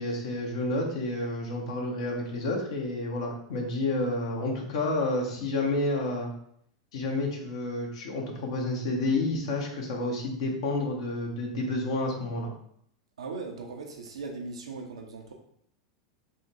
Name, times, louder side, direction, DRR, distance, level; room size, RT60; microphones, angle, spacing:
voice 1, 0.0-6.3 6.9-12.5, left 2 dB, 70° left, 1 dB, 1.0 m, -30 dB
voice 2, 13.2-15.3, right 3 dB, 85° right, 2 dB, 0.7 m, -39 dB
3.6 x 2.1 x 4.2 m, 0.68 s
hypercardioid pair, 95°, 3 cm